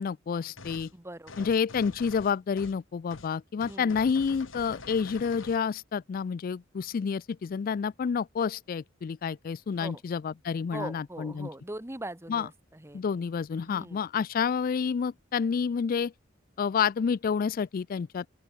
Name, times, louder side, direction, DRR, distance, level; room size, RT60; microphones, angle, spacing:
voice 1, 0.0-0.9 1.4-11.5 12.3-12.5 12.9-16.1 16.6-18.3, left 6 dB, 45° left, 0.3 m, -29 dB
sound 1, 0.6-0.9 1.3-2.8 3.1-3.3 3.6-5.6, left 3 dB, 90° left, 2.6 m, -46 dB
voice 2, 0.9-1.5 3.7-4.0 9.8-10.0 10.7-13.0 13.7-14.0, right 1 dB, 15° right, 1.5 m, -41 dB
open air
head